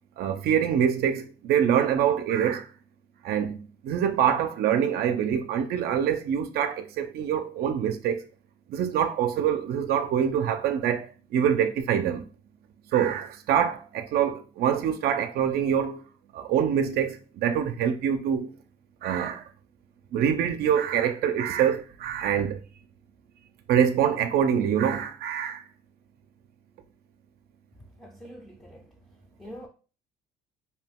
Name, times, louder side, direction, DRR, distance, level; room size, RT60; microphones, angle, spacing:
voice 1, 0.2-2.7 3.2-8.3 8.7-12.2 12.9-16.0 16.3-18.5 19.0-19.5 20.1-22.6 23.7-25.6, right 8 dB, 65° right, 0.4 m, -25 dB
voice 2, 28.0-29.7, equal, 5° left, 0.4 m, -46 dB
2.7 x 2.2 x 3.4 m
cardioid pair, 110°, 17 cm